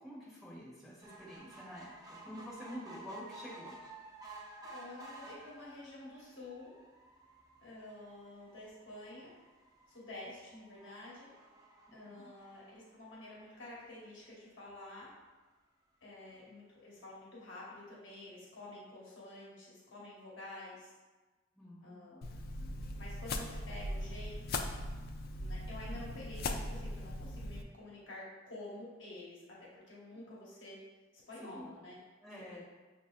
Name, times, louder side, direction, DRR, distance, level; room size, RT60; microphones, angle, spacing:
voice 1, 0.0-3.7 12.1-12.3 21.6-21.9 30.1-30.2 31.4-31.7 32.2-32.6, equal, ahead, -10 dB, 1.4 m, -48 dB
sound 1, 1.0-13.6 14.2-14.3 14.6-14.7 14.9-15.0, right 2 dB, 20° right, 0.4 m, -54 dB
voice 2, 4.6-6.7 7.6-9.3 9.9-11.3 11.9-15.1 16.0-20.9 21.8-22.2 22.5-24.7 25.4-30.8 31.3-32.0 32.4-32.6, left 2 dB, 70° left, -6 dB, 1.1 m, -49 dB
sound 2, 22.2-27.6, left 2 dB, 50° left, 0.3 m, -39 dB
6.1 x 2.6 x 2.3 m, 1.2 s
head